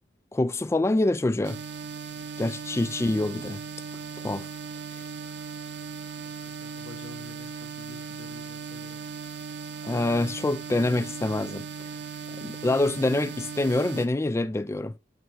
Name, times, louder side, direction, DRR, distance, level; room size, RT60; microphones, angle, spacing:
voice 1, 0.3-1.6 2.4-3.6 4.2-4.5 9.8-11.7 12.4-14.9, left 2 dB, 15° left, 0.3 m, -26 dB
sound 1, 1.4-14.1, right 5 dB, 65° right, 0.9 m, -38 dB
voice 2, 2.9-3.2 6.2-9.0, left 4 dB, 85° left, 1.3 m, -49 dB
9.3 x 4.5 x 4.4 m
head